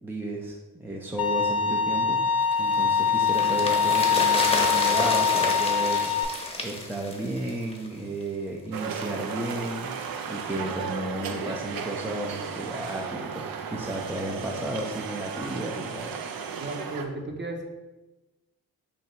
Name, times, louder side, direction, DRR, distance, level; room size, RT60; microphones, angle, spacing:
voice 1, 0.0-2.2 2.6-6.1 6.6-9.9 10.3-16.1, right 1 dB, 5° right, -1 dB, 0.4 m, -33 dB
Bowed string instrument, 1.2-6.2, left 6 dB, 60° left, 0.6 m, -23 dB
sound 1, 2.5-7.9 8.2-8.3, left 1 dB, 15° left, 0.9 m, -30 dB
sound 2, 8.7-17.1, right 6 dB, 60° right, 0.5 m, -35 dB
voice 2, 16.6-17.6, right 2 dB, 25° right, 1 dB, 0.8 m, -34 dB
2.8 x 2.7 x 4.2 m, 1.1 s
supercardioid pair, 40°, 40 cm